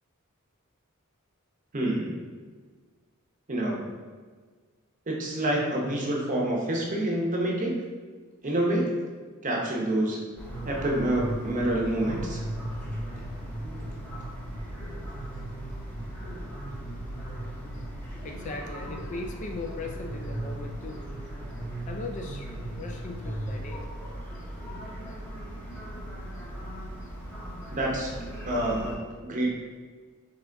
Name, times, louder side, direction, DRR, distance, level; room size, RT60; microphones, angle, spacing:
voice 1, 1.7-2.2 3.5-3.8 5.1-7.8 8.4-8.9 9.4-10.2 10.6-12.4 27.7-28.1 28.5-29.5, right 1 dB, 35° right, -1 dB, 0.8 m, -27 dB
sound 1, 10.4-28.9, right 1 dB, 10° left, 0.8 m, -37 dB
voice 2, 18.2-21.0 21.9-23.8 24.3-24.4, left 3 dB, 35° left, 3 dB, 0.3 m, -38 dB
3.8 x 3.4 x 3.3 m, 1.5 s
head